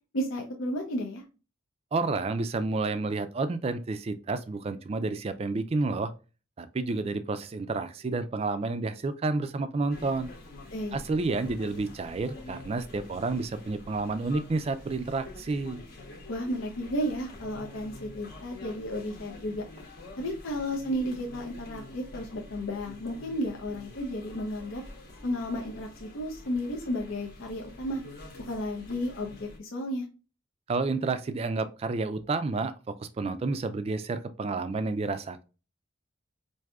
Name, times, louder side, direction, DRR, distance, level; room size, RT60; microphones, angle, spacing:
voice 1, 0.1-1.2 10.7-11.0 16.3-19.6 20.2-24.8 25.2-28.0 28.5-30.1, equal, 85° left, 1 dB, 0.6 m, -33 dB
voice 2, 1.9-6.1 6.6-10.3 10.9-15.8 30.7-32.7 33.0-35.4, right 3 dB, 30° right, 11 dB, 0.3 m, -30 dB
sound 1, 9.9-29.6, left 2 dB, 50° left, 0.9 m, -47 dB
4.7 x 2.6 x 2.3 m, 0.33 s
head